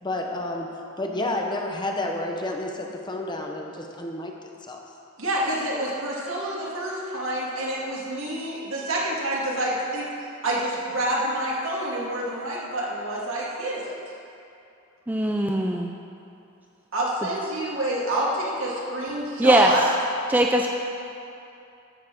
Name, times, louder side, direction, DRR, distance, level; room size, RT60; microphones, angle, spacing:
voice 1, 0.0-4.9, left 2 dB, 20° left, 1 dB, 0.9 m, -30 dB
voice 2, 5.2-10.1 10.4-13.9 16.9-19.8, right 1 dB, 75° right, -5 dB, 2.3 m, -28 dB
voice 3, 15.1-15.9 19.4-19.7 20.3-20.7, right 1 dB, 10° right, 2 dB, 0.4 m, -20 dB
14.0 x 5.7 x 6.0 m, 2.7 s
head